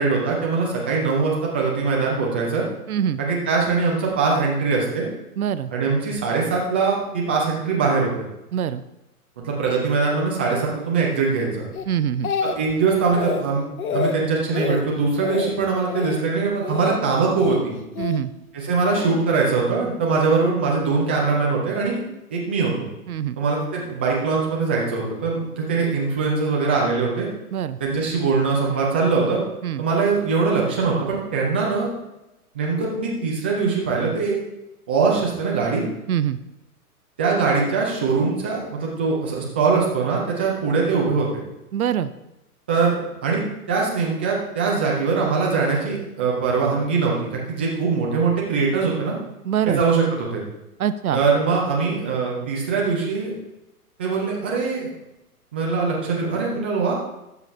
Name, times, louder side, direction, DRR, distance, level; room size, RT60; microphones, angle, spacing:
voice 1, 0.0-2.6 3.2-5.1 5.7-8.1 9.4-11.7 12.4-13.7 13.9-17.7 18.5-22.0 22.3-22.7 23.4-27.3 27.8-29.4 29.8-31.9 32.5-34.4 34.9-35.8 37.2-41.4 42.7-43.4 43.7-49.1 49.6-50.4 51.1-53.3 54.0-54.9 55.5-56.9, right 4 dB, 10° right, -3 dB, 0.4 m, -22 dB
voice 2, 2.9-3.2 5.4-5.7 8.5-8.8 11.9-12.3 18.0-18.3 23.1-23.4 27.5-27.8 29.6-29.8 36.1-36.4 41.7-42.1 49.4-49.8 50.8-51.2, right 9 dB, 70° right, 14 dB, 0.7 m, -24 dB
Speech, 11.7-12.7 13.0-13.4 13.8-14.2 14.5-14.8 15.2-15.5 15.9-16.2 16.6-17.0 17.4-18.2 18.9-19.2, left 6 dB, 65° left, 1.0 m, -27 dB
12.5 x 6.9 x 3.2 m, 0.93 s
figure-of-eight pair, 120°, 46 cm